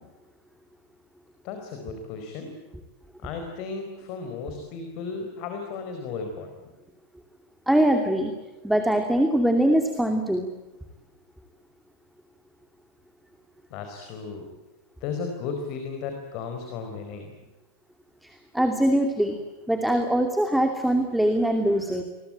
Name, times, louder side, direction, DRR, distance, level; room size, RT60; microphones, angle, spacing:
voice 1, 1.4-2.6 3.2-6.7 13.7-14.5 15.0-17.3, left 5 dB, 40° left, 5 dB, 4.6 m, -35 dB
voice 2, 7.7-8.3 8.6-10.5 18.2-19.4 19.7-22.0, right 1 dB, ahead, 5 dB, 2.6 m, -22 dB
29.0 x 22.5 x 9.1 m, 1.2 s
figure-of-eight pair, 90°, 0 cm